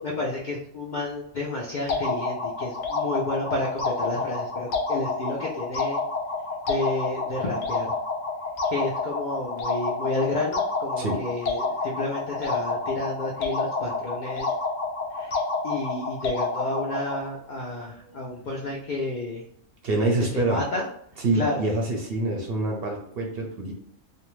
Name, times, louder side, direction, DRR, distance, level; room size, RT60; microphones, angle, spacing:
voice 1, 0.0-6.0 6.7-7.9 8.7-14.5 15.1-19.4 20.3-20.9 21.3-21.7, left 2 dB, 90° left, -2 dB, 0.4 m, -31 dB
sound 1, 1.9-17.3, left 3 dB, 65° left, 0.8 m, -29 dB
voice 2, 19.8-20.6 21.2-23.7, right 2 dB, 60° right, 0 dB, 0.7 m, -26 dB
2.5 x 2.2 x 3.0 m, 0.71 s
omnidirectional pair, 1.4 m